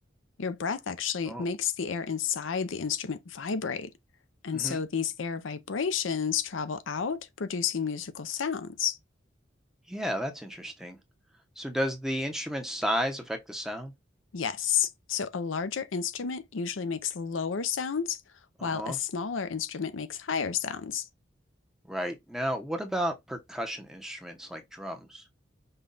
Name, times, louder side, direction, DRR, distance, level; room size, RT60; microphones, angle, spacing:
voice 1, 0.4-3.9 4.4-9.0 14.3-18.2 18.6-21.1, left 7 dB, 85° left, 0.6 m, -31 dB
voice 2, 9.9-11.0 11.6-13.9 18.6-19.0 21.9-25.2, equal, 5° right, 0.7 m, -33 dB
5.5 x 2.3 x 3.8 m
head